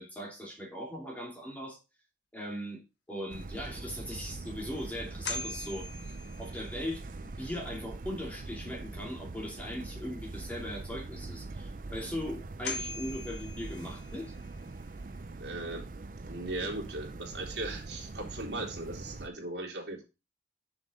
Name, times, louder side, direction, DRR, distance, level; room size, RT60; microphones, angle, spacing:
voice 1, 0.0-1.8 2.3-2.8 3.1-5.9 6.4-14.3, equal, 10° left, -1 dB, 2.5 m, -39 dB
sound 1, 3.3-19.3, right 3 dB, 50° right, 0.5 m, -43 dB
sound 2, 3.8-3.9 4.4-4.5 5.2-6.9 12.0-12.1 12.6-14.3, left 3 dB, 75° left, 1.4 m, -40 dB
voice 2, 15.4-20.0, right 2 dB, 75° right, -1 dB, 2.9 m, -38 dB
7.1 x 6.2 x 3.6 m, 0.27 s
head